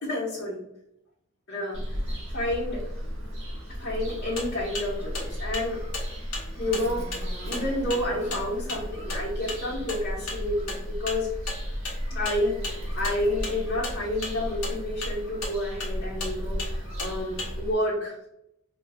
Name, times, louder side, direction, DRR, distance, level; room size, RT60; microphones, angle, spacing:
voice 1, 0.0-0.6 1.5-1.8 2.3-2.8 3.7-5.8 6.6-7.0 7.4-11.3 12.1-12.6 13.0-18.1, left 1 dB, 60° left, -8 dB, 0.9 m, -29 dB
Bird vocalization bird call bird song, 1.7-17.7, equal, 60° right, 1.2 m, -34 dB
sound 1, 4.1-17.6, left 2 dB, 85° left, 1.0 m, -37 dB
4.8 x 2.2 x 2.3 m, 0.81 s
head